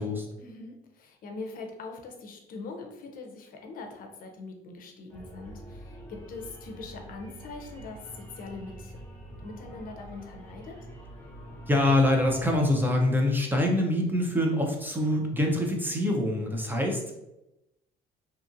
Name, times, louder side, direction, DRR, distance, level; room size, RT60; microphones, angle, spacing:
voice 1, 0.4-9.0 9.4-10.7, left 3 dB, 55° left, 3 dB, 0.6 m, -42 dB
sound 1, 5.1-12.6, equal, 10° left, 0.9 m, -45 dB
voice 2, 11.7-17.2, left 1 dB, 10° right, 1 dB, 0.5 m, -25 dB
2.8 x 2.4 x 2.6 m, 0.90 s
cardioid pair, 110°, 17 cm